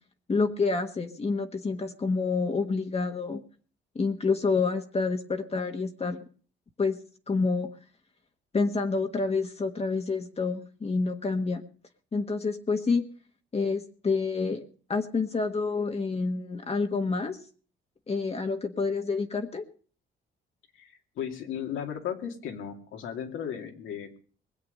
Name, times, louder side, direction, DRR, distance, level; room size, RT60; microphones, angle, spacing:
voice 1, 0.3-3.4 3.9-6.2 6.8-7.0 7.3-7.7 8.5-11.6 12.1-13.1 13.5-14.6 14.9-17.4 18.1-19.7, left 4 dB, 30° left, 5 dB, 1.3 m, -28 dB
voice 2, 20.7-24.2, left 8 dB, 85° left, 4 dB, 2.4 m, -36 dB
20.5 x 8.0 x 6.6 m, 0.44 s
cardioid pair, 90°, 20 cm